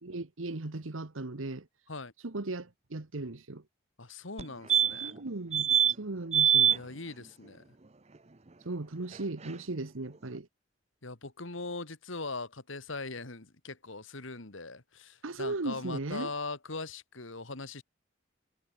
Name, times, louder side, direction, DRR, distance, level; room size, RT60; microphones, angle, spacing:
voice 1, 0.0-1.7 2.2-3.6 5.0-5.7 6.0-6.8 8.6-10.5 15.2-16.3, right 2 dB, 80° right, 1.3 m, -37 dB
voice 2, 4.0-5.1 6.7-7.7 11.0-17.8, left 3 dB, 75° left, 2.3 m, -40 dB
sound 1, 4.4-4.5 4.7-5.2 5.5-5.9 6.3-6.8 9.1-9.2 9.4-9.5, right 9 dB, 30° right, 0.8 m, -24 dB
head